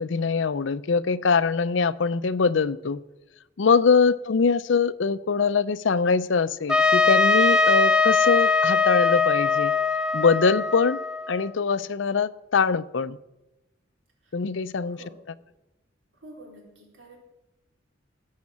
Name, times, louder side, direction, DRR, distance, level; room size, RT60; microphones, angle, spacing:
voice 1, 0.0-3.0 3.6-9.7 10.1-11.0 11.3-13.2 14.3-15.0, left 5 dB, 70° left, 16 dB, 0.5 m, -23 dB
Trumpet, 6.7-11.5, left 4 dB, 5° right, 0.6 m, -21 dB
voice 2, 14.9-15.2 16.1-17.2, right 1 dB, 75° right, 0 dB, 4.1 m, -48 dB
17.5 x 6.5 x 7.2 m, 0.99 s
head